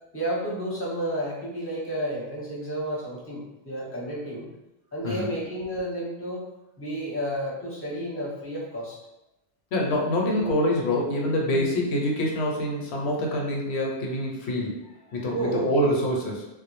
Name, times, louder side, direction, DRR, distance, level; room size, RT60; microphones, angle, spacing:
voice 1, 0.1-4.5 4.9-6.4 6.8-9.0 10.2-10.6 11.5-11.7 15.3-15.9, right 1 dB, 15° left, -5 dB, 0.6 m, -31 dB
voice 2, 9.7-16.5, left 1 dB, 80° left, -1 dB, 0.8 m, -26 dB
2.3 x 2.0 x 3.0 m, 0.94 s
omnidirectional pair, 1.1 m